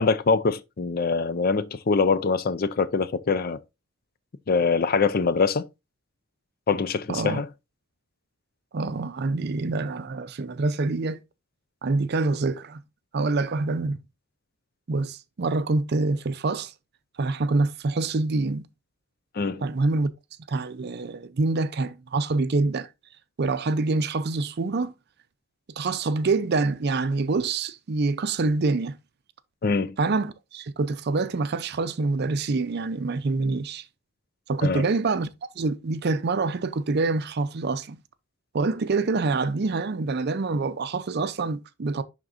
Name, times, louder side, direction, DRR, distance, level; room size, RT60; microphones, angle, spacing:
voice 1, 0.0-3.6 4.5-5.7 6.7-7.5 19.4-19.6 29.6-30.0 34.6-34.8, left 4 dB, 45° left, 0.4 m, -23 dB
voice 2, 7.1-7.4 8.7-11.2 11.8-12.8 13.1-14.0 14.9-16.7 17.2-18.7 19.6-20.1 20.5-22.9 23.4-24.9 25.8-29.0 30.0-33.8 34.5-35.3 35.6-38.0 38.5-42.0, right 3 dB, 50° right, 0.5 m, -26 dB
11.0 x 3.7 x 2.5 m
head